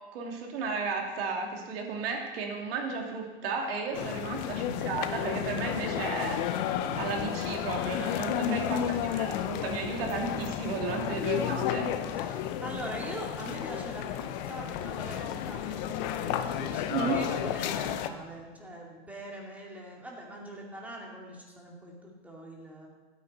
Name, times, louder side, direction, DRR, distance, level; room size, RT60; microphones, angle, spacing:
voice 1, 0.1-6.6 6.9-8.6 9.1-11.9 16.9-17.2, right 4 dB, 60° right, 1 dB, 2.7 m, -33 dB
sound 1, 3.9-18.1, left 10 dB, 45° left, 0.8 m, -32 dB
voice 2, 4.3-4.9 8.4-9.1 12.1-22.9, right 1 dB, 5° right, -2 dB, 2.3 m, -42 dB
15.0 x 9.2 x 4.2 m, 1.4 s
hypercardioid pair, 135°, 32 cm